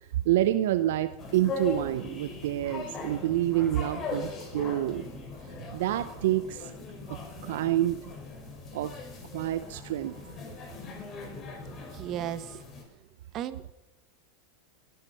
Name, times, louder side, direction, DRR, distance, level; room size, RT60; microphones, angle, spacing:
voice 1, 0.2-5.1 5.7-6.7 7.1-8.1 8.7-9.0 9.3-10.4, right 13 dB, 70° right, 12 dB, 0.7 m, -28 dB
sound 1, 1.2-12.8, left 4 dB, 30° left, 5.4 m, -40 dB
voice 2, 11.7-12.6 13.3-13.7, right 11 dB, 40° right, 13 dB, 1.3 m, -36 dB
21.5 x 10.5 x 5.8 m, 0.96 s
hypercardioid pair, 100°, 0 cm